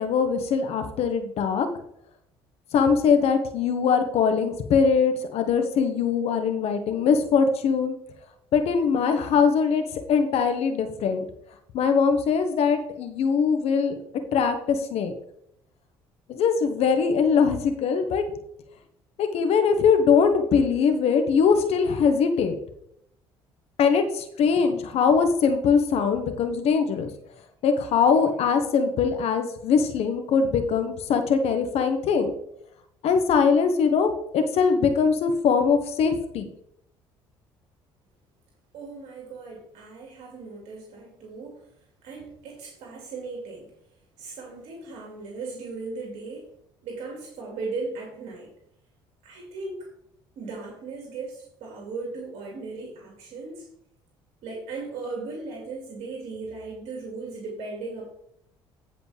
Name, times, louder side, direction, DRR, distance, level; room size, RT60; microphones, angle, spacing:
voice 1, 0.0-1.7 2.7-7.9 8.5-11.3 11.7-14.0 14.3-15.1 16.3-18.2 19.2-22.5 23.8-27.1 27.6-32.3 33.0-36.5, left 6 dB, 65° left, 7 dB, 1.4 m, -22 dB
voice 2, 38.7-41.7 42.0-43.7 44.2-46.5 46.8-48.5 49.2-49.9 50.4-53.7 54.4-58.1, right 3 dB, 65° right, -1 dB, 2.6 m, -37 dB
15.0 x 5.0 x 3.4 m, 0.74 s
supercardioid pair, 75°, 11 cm